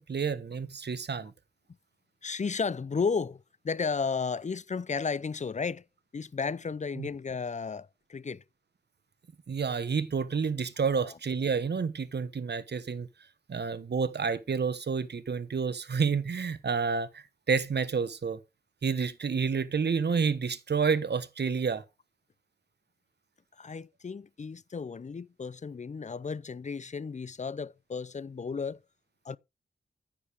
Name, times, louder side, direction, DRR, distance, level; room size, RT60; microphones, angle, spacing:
voice 1, 0.0-1.3 7.0-7.1 9.5-13.1 13.5-18.4 18.8-21.8, right 5 dB, 70° right, 1.2 m, -29 dB
voice 2, 2.2-5.8 6.1-8.4 10.9-11.1 23.6-28.8 29.2-29.4, left 5 dB, 40° left, 0.6 m, -33 dB
9.9 x 8.6 x 3.6 m
cardioid pair, 50°, 18 cm